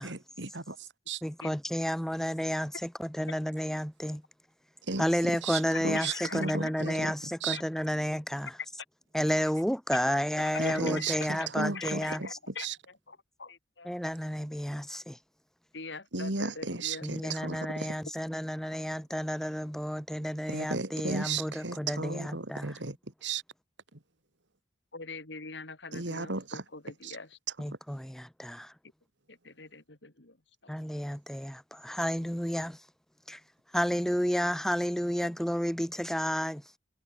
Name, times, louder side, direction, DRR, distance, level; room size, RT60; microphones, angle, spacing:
voice 1, 0.0-1.2 4.8-7.1 7.4-7.6 10.6-12.8 16.1-18.0 20.5-23.4 23.9-24.0 25.9-26.6 27.0-27.2, right 4 dB, 85° right, 3.2 m, -35 dB
voice 2, 1.2-4.2 5.0-8.5 9.1-12.2 13.8-15.2 17.0-22.7 27.6-28.7 30.7-32.8 33.3-33.4 33.7-36.6, equal, 5° left, 1.6 m, -31 dB
voice 3, 5.9-6.4 6.8-6.9 7.5-7.6 10.4-11.5 11.7-12.7 13.1-13.9 15.7-17.3 24.9-27.4 29.3-30.4 30.6-30.7, left 4 dB, 75° left, 3.4 m, -43 dB
head